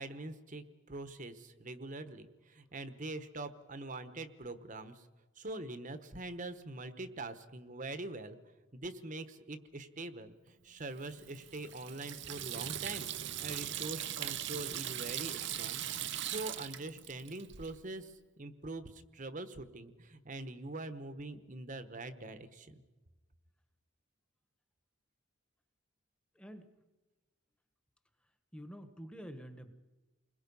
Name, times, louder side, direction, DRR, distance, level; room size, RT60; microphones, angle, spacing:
voice 1, 0.0-5.1 5.4-8.4 8.7-15.8 16.2-22.8, right 2 dB, 40° right, 11 dB, 1.2 m, -44 dB
Water tap faucet / Sink (filling or washing), 11.0-17.7, right 11 dB, 55° right, 0.8 m, -40 dB
voice 2, 26.3-26.7 28.5-29.7, equal, 5° left, 8 dB, 1.3 m, -48 dB
29.5 x 21.5 x 5.5 m, 1.2 s
head